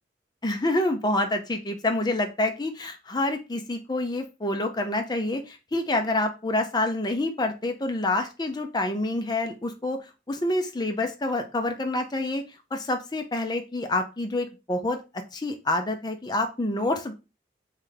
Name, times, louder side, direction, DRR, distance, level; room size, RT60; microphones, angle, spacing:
voice 1, 0.4-12.4 12.7-15.0 15.3-17.1, left 2 dB, 25° left, 5 dB, 0.5 m, -27 dB
3.2 x 3.2 x 3.8 m, 0.28 s
head